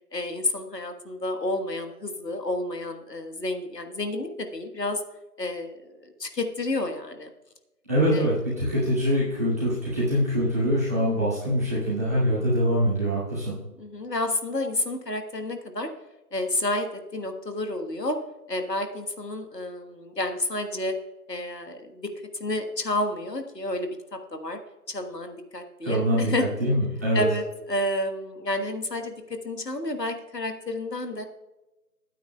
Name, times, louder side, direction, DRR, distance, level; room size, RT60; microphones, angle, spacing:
voice 1, 0.1-5.0 5.4-7.3 8.1-8.3 13.8-15.9 16.3-16.9 17.1-18.2 18.5-20.9 21.3-22.1 22.4-23.9 24.3-24.6 24.9-26.4 27.1-29.1 29.4-31.3, left 1 dB, 80° left, 6 dB, 1.4 m, -30 dB
voice 2, 7.9-13.5 25.8-27.2, equal, 10° right, -13 dB, 2.3 m, -24 dB
16.5 x 9.2 x 2.2 m, 1.0 s
figure-of-eight pair, 170°, 48 cm